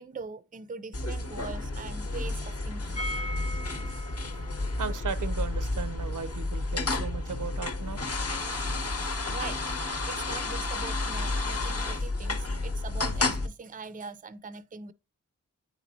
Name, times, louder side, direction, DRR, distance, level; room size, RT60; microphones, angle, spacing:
voice 1, 0.0-3.0 3.9-4.0 8.5-8.7 9.3-9.7 10.1-14.9, right 4 dB, 25° right, 0.4 m, -42 dB
sound 1, 0.9-13.5, left 2 dB, 50° left, 0.8 m, -31 dB
sound 2, 2.9-8.7 9.0-9.1 9.3-9.4, left 1 dB, 20° left, 0.6 m, -42 dB
voice 2, 4.8-8.1, right 6 dB, 80° right, 0.6 m, -36 dB
8.7 x 4.2 x 2.7 m
wide cardioid pair, 75°, 31 cm